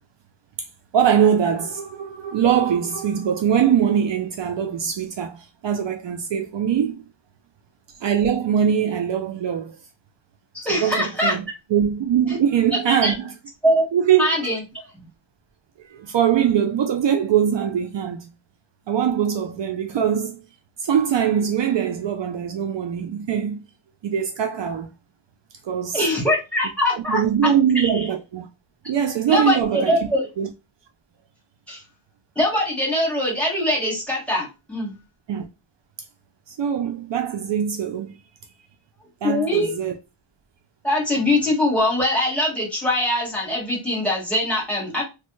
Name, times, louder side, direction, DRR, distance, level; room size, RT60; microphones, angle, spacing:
voice 1, 0.9-7.0 8.0-9.8 10.7-11.4 11.7-13.3 13.9-14.5 15.9-18.3 18.9-20.4 20.8-23.6 24.0-24.9 25.6-26.0 26.9-28.5 28.9-30.0 30.4-30.5 35.3-35.4 36.5-38.1 39.2-39.9, right 8 dB, 65° right, 0.5 m, -22 dB
voice 2, 10.5-11.3 12.9-13.1 13.6-13.8 14.2-14.6 25.9-27.5 27.8-28.0 29.3-30.3 31.7-31.8 32.3-34.9 39.2-39.7 40.8-45.0, left 1 dB, 5° left, 1.5 m, -22 dB
3.2 x 2.2 x 3.1 m
wide cardioid pair, 145°, 48 cm